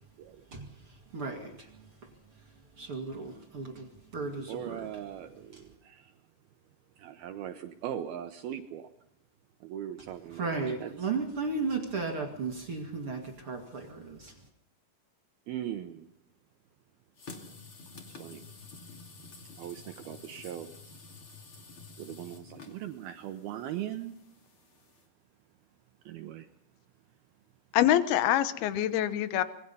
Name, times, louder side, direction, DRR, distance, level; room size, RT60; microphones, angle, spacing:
voice 1, 0.5-1.7 2.0-2.1 2.8-4.9 5.5-5.6 10.4-14.4, right 4 dB, 45° right, 1.9 m, -35 dB
voice 2, 4.5-6.1 7.0-8.9 9.6-11.1 15.5-16.1 18.1-18.4 19.6-20.7 22.0-24.2 26.1-26.5, right 11 dB, 85° right, 2.1 m, -40 dB
sound 1, 17.2-25.0, left 4 dB, 40° left, 2.3 m, -50 dB
voice 3, 27.7-29.4, left 12 dB, 70° left, 2.5 m, -25 dB
26.0 x 22.0 x 5.5 m
omnidirectional pair, 5.8 m